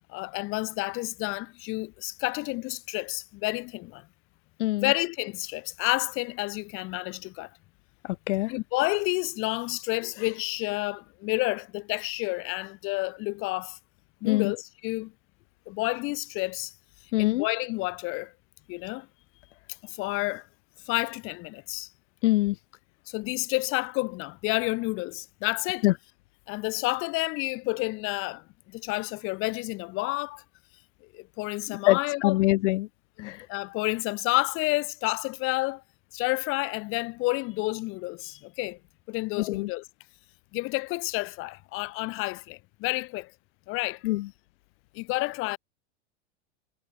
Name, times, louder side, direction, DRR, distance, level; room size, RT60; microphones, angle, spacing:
voice 1, 0.1-4.1 4.8-7.5 8.5-13.8 14.2-15.1 15.7-16.7 17.2-18.3 18.7-19.1 19.8-20.5 20.9-21.9 23.1-25.9 26.5-30.4 31.1-32.3 33.2-35.8 36.1-38.8 39.1-39.8 40.5-43.3 43.7-44.0 44.9-45.6, left 23 dB, 40° left, 0.6 m, -30 dB
voice 2, 4.6-4.9 8.0-8.5 14.2-14.5 17.1-17.5 22.2-22.6 25.8-25.9 31.7-32.9 33.2-33.5 39.4-39.7 44.0-44.3, left 18 dB, 85° left, 0.5 m, -24 dB
supercardioid pair, 120°, 35 cm